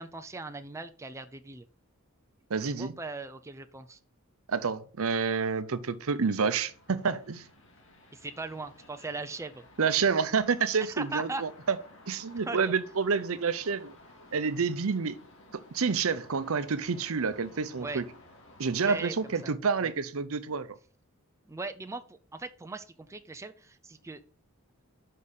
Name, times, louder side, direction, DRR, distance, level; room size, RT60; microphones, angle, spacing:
voice 1, 0.0-1.7 2.7-4.0 8.1-9.7 10.9-11.4 12.5-12.7 17.8-18.0 18.9-19.1 19.4-19.5 19.8-19.9 21.5-24.2, right 3 dB, 15° right, 0.4 m, -39 dB
voice 2, 2.5-2.9 4.5-7.4 9.8-11.8 12.1-13.9 14.3-15.2 15.7-18.0 18.6-20.8, right 5 dB, 70° right, 0.7 m, -28 dB
sound 1, 6.3-19.5, left 2 dB, 65° left, 2.1 m, -55 dB
5.5 x 5.5 x 6.5 m
head